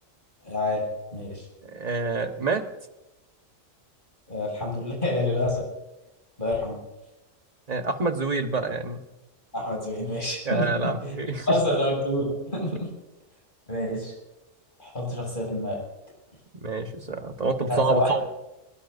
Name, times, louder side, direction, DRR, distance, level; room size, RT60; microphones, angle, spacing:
voice 1, 0.4-0.9 1.1-1.4 4.3-5.6 6.4-6.8 9.5-10.9 11.4-12.2 12.5-12.9 13.7-14.1 14.8-15.8 17.7-18.1, left 1 dB, 40° left, -3 dB, 7.1 m, -27 dB
voice 2, 1.6-2.6 7.7-9.1 10.4-11.6 16.6-18.2, right 3 dB, 30° right, 6 dB, 1.3 m, -27 dB
22.0 x 21.5 x 2.7 m, 1.0 s
omnidirectional pair, 1.3 m